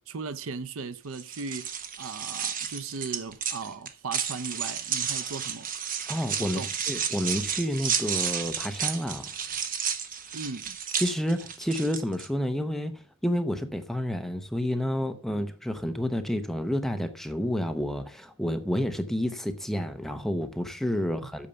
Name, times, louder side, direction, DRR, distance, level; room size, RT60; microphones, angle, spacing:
voice 1, 0.0-5.7 6.4-6.7 10.3-10.8 21.2-21.3, right 4 dB, 70° right, 0.6 m, -37 dB
sound 1, 1.1-12.3, right 8 dB, 40° right, 1.0 m, -32 dB
voice 2, 6.1-9.3 10.9-21.5, equal, ahead, 0.8 m, -30 dB
8.6 x 6.8 x 6.8 m
head